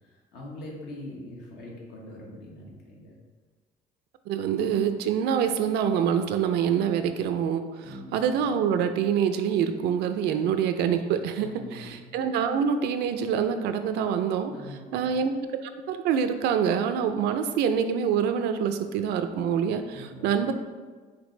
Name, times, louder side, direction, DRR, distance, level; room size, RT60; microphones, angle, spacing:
voice 1, 0.0-3.1 7.8-8.3 11.4-12.0 14.5-15.1 19.9-20.3, left 1 dB, 85° left, -2 dB, 1.2 m, -43 dB
voice 2, 4.3-7.8 8.1-14.5 14.9-15.3 15.6-20.5, right 7 dB, 80° right, 8 dB, 0.4 m, -26 dB
5.1 x 3.2 x 3.1 m, 1.4 s
cardioid pair, 110°, 17 cm